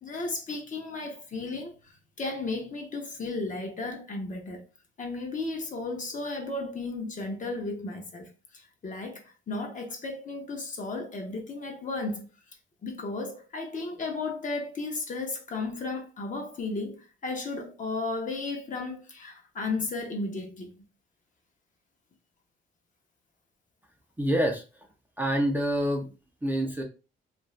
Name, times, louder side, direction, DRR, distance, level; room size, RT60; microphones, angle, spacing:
voice 1, 0.0-4.6 5.0-12.3 12.8-20.7, left 3 dB, 40° left, 0.9 m, -34 dB
voice 2, 24.2-24.9 25.2-26.1 26.4-26.8, right 1 dB, 10° right, 0.6 m, -27 dB
2.5 x 2.3 x 3.1 m
cardioid pair, 90°, 20 cm